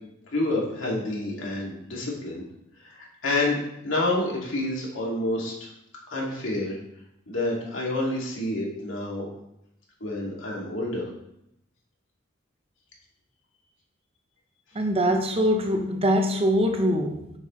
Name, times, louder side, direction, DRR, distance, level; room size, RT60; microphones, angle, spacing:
voice 1, 0.3-2.4 2.8-5.5 6.1-6.8 7.3-9.3 10.0-11.0, left 2 dB, 75° left, -3 dB, 2.3 m, -28 dB
voice 2, 14.7-17.4, equal, 30° right, 5 dB, 0.7 m, -23 dB
7.2 x 6.5 x 3.2 m, 0.80 s
head